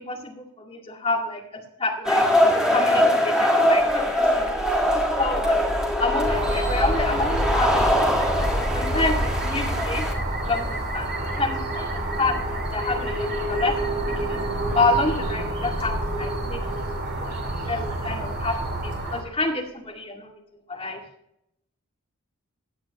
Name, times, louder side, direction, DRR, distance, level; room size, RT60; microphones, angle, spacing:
voice 1, 0.0-1.4 1.8-2.2 2.7-4.9 5.1-5.6 6.0-8.5 8.7-10.1 10.4-11.9 12.2-12.4 12.7-14.4 14.7-16.7 17.2-17.3 17.6-20.3 20.7-21.0, left 2 dB, 25° left, 0 dB, 2.2 m, -28 dB
sound 1, 2.0-10.1, equal, 5° right, 1.7 m, -22 dB
sound 2, 3.7-18.8, equal, 20° right, 5.6 m, -31 dB
sound 3, 6.2-19.2, right 1 dB, 45° right, 2.5 m, -30 dB
16.0 x 10.0 x 3.0 m, 0.76 s
head